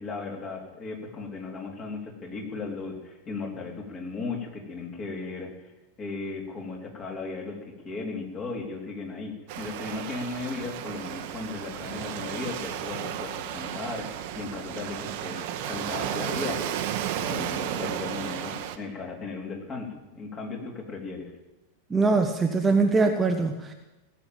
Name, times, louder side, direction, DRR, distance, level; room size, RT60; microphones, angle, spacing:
voice 1, 0.0-5.7 6.0-16.9 17.2-21.3, left 3 dB, 25° left, 1 dB, 3.6 m, -36 dB
Waves surf, 9.5-18.8, right 10 dB, 45° right, 1.1 m, -33 dB
voice 2, 21.9-23.7, right 3 dB, 15° right, 4 dB, 1.1 m, -22 dB
18.0 x 7.5 x 9.0 m, 1.1 s
figure-of-eight pair, 90°, 0 cm